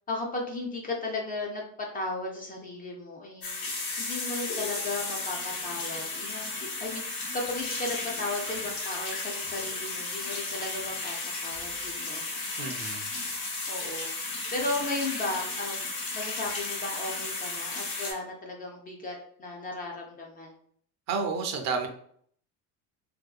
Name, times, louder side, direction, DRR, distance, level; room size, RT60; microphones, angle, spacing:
voice 1, 0.1-1.6 1.9-3.5 4.0-11.2 11.4-12.5 13.3-14.1 14.5-15.9 16.1-20.5, left 2 dB, 25° left, -1 dB, 0.3 m, -35 dB
sound 1, 3.4-18.1, left 3 dB, 75° left, 1.1 m, -34 dB
voice 2, 12.6-13.1 21.1-21.9, right 4 dB, 45° right, 4 dB, 0.5 m, -30 dB
2.6 x 2.2 x 2.3 m, 0.63 s
cardioid pair, 125°, 37 cm